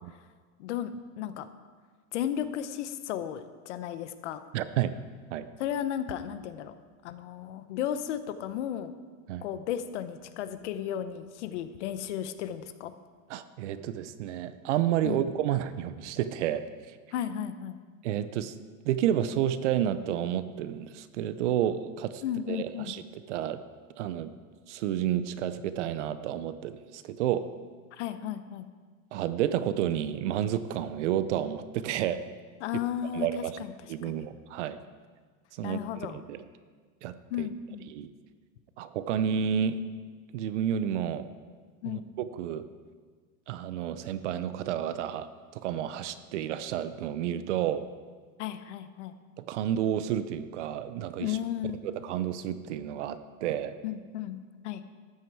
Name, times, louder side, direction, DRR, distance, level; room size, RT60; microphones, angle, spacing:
voice 1, 0.6-1.5 2.1-4.4 5.6-6.7 7.0-8.9 9.4-12.9 15.0-15.2 17.1-17.8 22.2-22.9 27.9-28.7 32.6-33.3 33.6-33.7 34.0-34.3 35.6-36.2 37.3-37.9 41.8-42.0 48.4-49.2 51.2-51.8 53.8-54.4 54.6-54.8, left 10 dB, 55° left, 12 dB, 0.8 m, -34 dB
voice 2, 4.5-5.0 5.3-5.5 9.3-9.5 13.3-17.0 18.0-18.5 18.8-22.2 22.5-23.6 24.0-24.3 24.7-27.5 29.1-32.2 33.1-33.6 33.9-34.8 35.5-36.4 37.0-37.5 37.9-38.1 38.8-39.8 40.3-41.3 41.9-42.7 43.5-47.8 49.4-51.4 51.8-53.7, right 10 dB, 55° right, 13 dB, 0.7 m, -30 dB
13.5 x 9.4 x 4.6 m, 1.5 s
supercardioid pair, 170°, 43 cm